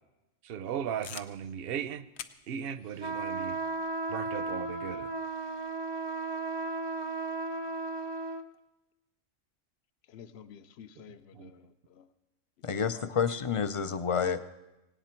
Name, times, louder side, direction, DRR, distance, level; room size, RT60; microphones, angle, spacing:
voice 1, 0.4-2.1 2.5-3.6 4.1-5.1 11.3-11.7, right 8 dB, 55° right, 14 dB, 0.8 m, -37 dB
sound 1, 1.0-5.8, left 9 dB, 85° left, 1.1 m, -51 dB
sound 2, 3.0-8.4, right 3 dB, 40° right, 0.4 m, -35 dB
voice 2, 10.0-12.1 12.6-13.2, left 8 dB, 60° left, 12 dB, 0.9 m, -52 dB
voice 3, 12.6-14.4, left 6 dB, 40° left, 11 dB, 0.4 m, -29 dB
18.0 x 17.5 x 4.5 m, 0.99 s
omnidirectional pair, 1.3 m